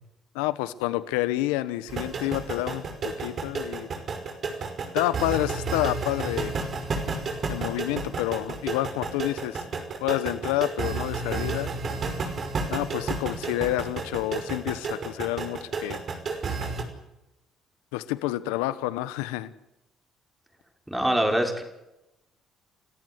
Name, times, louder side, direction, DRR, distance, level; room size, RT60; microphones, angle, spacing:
voice 1, 0.3-3.9 4.9-6.5 7.5-9.6 10.0-11.7 12.7-16.0 17.9-19.5, left 16 dB, 90° left, 15 dB, 1.0 m, -29 dB
sound 1, 1.9-16.8, right 4 dB, 50° right, 5.5 m, -31 dB
voice 2, 20.9-21.6, right 1 dB, 5° right, 4 dB, 5.9 m, -24 dB
30.0 x 14.0 x 8.1 m, 0.90 s
supercardioid pair, 65°, 0 cm